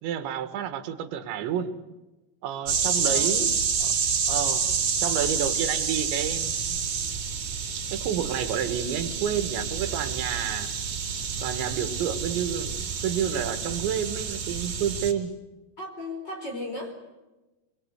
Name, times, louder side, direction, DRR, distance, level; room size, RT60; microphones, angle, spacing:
voice 1, 0.0-1.7 2.4-3.5 3.8-3.9 4.3-4.6 5.0-6.8 7.8-10.7 11.4-15.3, right 9 dB, 85° right, 9 dB, 3.9 m, -30 dB
sound 1, 2.7-15.1, right 6 dB, 60° right, 5.4 m, -28 dB
voice 2, 3.0-3.4 15.8-16.9, left 1 dB, 25° left, 3 dB, 4.8 m, -35 dB
25.5 x 23.0 x 8.1 m, 1.1 s
omnidirectional pair, 5.1 m